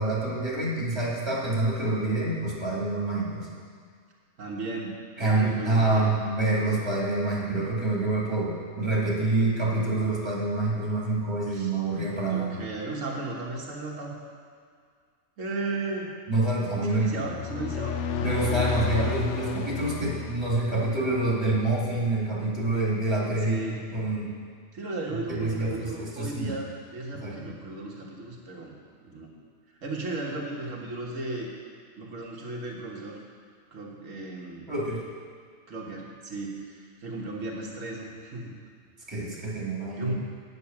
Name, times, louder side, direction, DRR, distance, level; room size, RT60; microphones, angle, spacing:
voice 1, 0.0-3.5 5.2-12.6 16.3-17.1 18.2-23.6 23.9-24.3 25.3-26.5 27.1-27.5 34.7-35.0 39.1-40.1, right 2 dB, 20° right, -5 dB, 2.3 m, -27 dB
voice 2, 4.4-6.1 11.5-11.7 12.3-14.2 15.4-16.2 16.9-19.4 23.4-23.8 24.7-28.7 29.0-29.4 29.8-31.5 32.0-33.2 33.7-34.7 35.7-38.6 39.9-40.1, right 2 dB, 85° right, -2 dB, 1.7 m, -35 dB
sound 1, 17.1-21.0, left 7 dB, 70° left, 0.9 m, -31 dB
9.1 x 8.2 x 5.9 m, 2.1 s
omnidirectional pair, 1.3 m